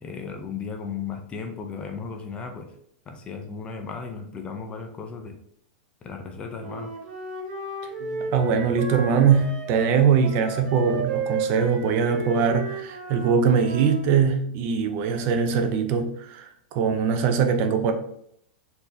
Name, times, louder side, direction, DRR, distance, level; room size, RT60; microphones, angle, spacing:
voice 1, 0.0-2.7 3.1-5.3 6.0-6.9, left 5 dB, 20° left, 0.4 m, -35 dB
Wind instrument woodwind instrument, 6.6-14.0, right 3 dB, 70° right, 1.6 m, -33 dB
voice 2, 8.0-17.9, right 6 dB, 35° right, 0.5 m, -22 dB
4.2 x 2.7 x 3.3 m
supercardioid pair, 155°, 6 cm